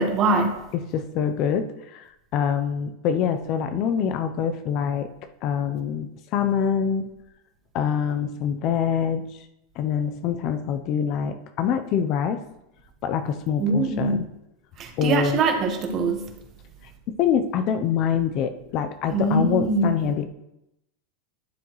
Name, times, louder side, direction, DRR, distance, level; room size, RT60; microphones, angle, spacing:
voice 1, 0.0-0.5 13.6-14.2 14.8-16.2 19.1-20.1, right 3 dB, 35° right, 4 dB, 1.3 m, -23 dB
voice 2, 0.7-5.1 5.4-7.1 7.7-9.2 9.8-12.4 13.0-14.3 15.0-15.4 17.1-20.2, left 8 dB, 40° left, 9 dB, 0.6 m, -25 dB
11.5 x 7.0 x 3.1 m, 0.87 s
supercardioid pair, 145°, 0 cm